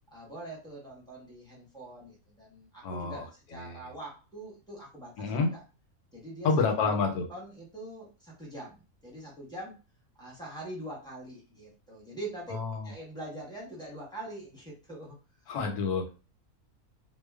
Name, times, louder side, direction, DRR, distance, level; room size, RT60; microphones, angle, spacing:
voice 1, 0.1-5.6 6.1-9.8 10.2-12.5 12.8-15.2, right 1 dB, 5° left, -3 dB, 0.6 m, -43 dB
voice 2, 2.8-3.8 5.2-5.5 6.4-7.3 12.5-12.9 15.5-16.1, left 4 dB, 85° left, 3 dB, 1.1 m, -29 dB
2.9 x 2.0 x 2.2 m, 0.32 s
omnidirectional pair, 1.6 m